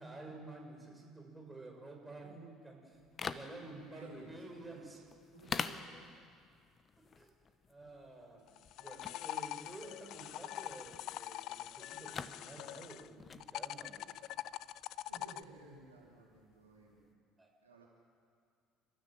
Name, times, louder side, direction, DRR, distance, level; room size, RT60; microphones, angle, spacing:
voice 1, 0.0-5.0 7.1-7.3 7.7-14.1 17.4-17.5, right 2 dB, 15° right, 1 dB, 6.0 m, -51 dB
sound 1, 2.9-17.1, left 5 dB, 35° left, 1.1 m, -48 dB
voice 2, 3.4-5.1 5.3-6.1 8.4-8.5 9.0-9.5 15.1-17.1 17.6-17.9, right 2 dB, 85° right, -3 dB, 3.2 m, -57 dB
sound 2, 8.5-13.1 13.4-15.4, left 14 dB, 55° left, 0.5 m, -43 dB
28.5 x 14.0 x 7.4 m, 2.2 s
figure-of-eight pair, 55°, 0 cm